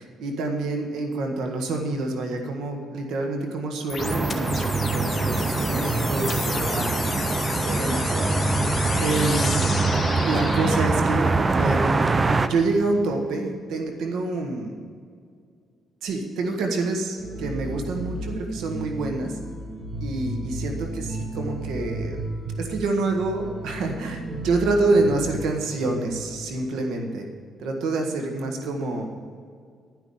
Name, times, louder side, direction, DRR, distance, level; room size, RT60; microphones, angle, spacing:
voice 1, 0.2-7.0 7.6-8.4 9.0-9.6 10.2-11.3 11.6-11.8 12.3-14.7 16.0-19.4 20.0-22.2 22.6-27.3 27.6-29.2, right 3 dB, 80° right, 3 dB, 1.6 m, -27 dB
sound 1, 3.9-10.9, left 4 dB, 35° left, 1.4 m, -32 dB
sound 2, 4.0-12.5, right 3 dB, 25° right, 0.6 m, -23 dB
sound 3, 17.2-26.8, right 1 dB, 45° right, 3.6 m, -34 dB
11.5 x 6.0 x 8.6 m, 2.1 s
cardioid pair, 90°, 0 cm